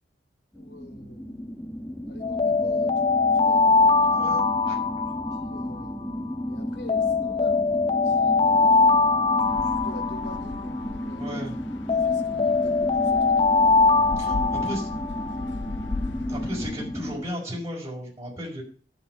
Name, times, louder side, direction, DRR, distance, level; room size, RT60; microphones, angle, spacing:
voice 1, 0.5-1.7 2.1-4.4 5.3-6.0 6.4-9.0 9.5-11.4 11.9-13.8 14.2-14.7, left 2 dB, 65° left, 5 dB, 3.1 m, -46 dB
sound 1, 0.6-17.2, equal, 10° left, 1.6 m, -34 dB
Alarm, 2.2-6.4 6.9-11.4 11.9-15.7, left 4 dB, 30° left, 0.8 m, -22 dB
voice 2, 4.1-4.8 11.2-11.5 14.2-14.3 14.6-14.9 16.3-18.6, equal, 15° right, -4 dB, 5.0 m, -35 dB
sound 2, 9.4-16.7, left 3 dB, 85° left, 0.7 m, -38 dB
12.0 x 6.9 x 7.9 m, 0.42 s
head